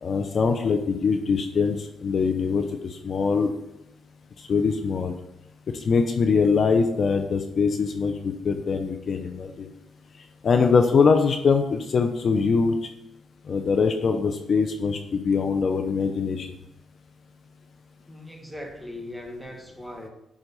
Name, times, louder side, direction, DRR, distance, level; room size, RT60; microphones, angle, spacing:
voice 1, 0.0-2.6 3.0-3.5 4.5-5.2 5.8-9.7 10.4-12.8 13.5-16.5, left 5 dB, 55° left, 5 dB, 0.8 m, -22 dB
voice 2, 18.1-20.1, left 1 dB, ahead, 2 dB, 1.8 m, -39 dB
11.0 x 3.9 x 5.5 m, 0.87 s
cardioid pair, 90°, 0 cm